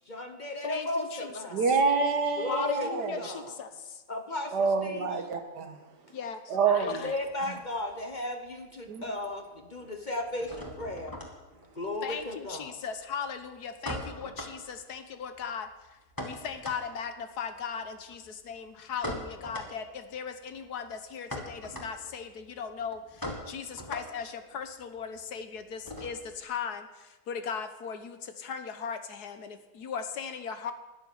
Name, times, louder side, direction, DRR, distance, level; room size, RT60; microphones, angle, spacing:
voice 1, 0.1-1.6 2.4-3.5 4.1-5.2 6.7-11.1 11.7-12.7, left 1 dB, 30° left, 5 dB, 1.0 m, -35 dB
voice 2, 0.6-1.3 2.5-4.0 6.1-7.1 12.0-30.7, left 6 dB, 70° left, 9 dB, 1.5 m, -38 dB
voice 3, 1.5-3.2 4.5-5.8 6.5-7.1 8.9-9.0, right 5 dB, 75° right, 5 dB, 1.9 m, -27 dB
sound 1, 6.6-8.2 8.5-9.2 9.4-26.5, left 1 dB, 10° left, 1.8 m, -43 dB
12.5 x 7.2 x 9.8 m, 1.1 s
omnidirectional pair, 1.8 m